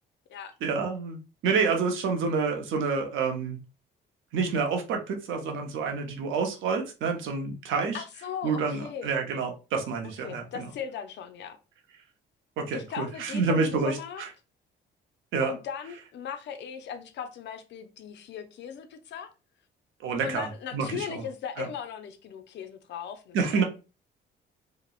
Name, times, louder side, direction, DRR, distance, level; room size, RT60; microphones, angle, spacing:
voice 1, 0.6-3.6 4.3-8.0 8.4-10.6 12.6-14.3 15.3-15.5 20.0-20.5 20.7-21.2 21.6-21.7 23.3-23.6, right 5 dB, 85° right, 0.7 m, -28 dB
voice 2, 7.9-9.2 10.0-11.6 12.7-14.2 15.4-19.3 20.2-23.6, left 7 dB, 65° left, 0.4 m, -38 dB
2.8 x 2.0 x 2.3 m
cardioid pair, 90°, 20 cm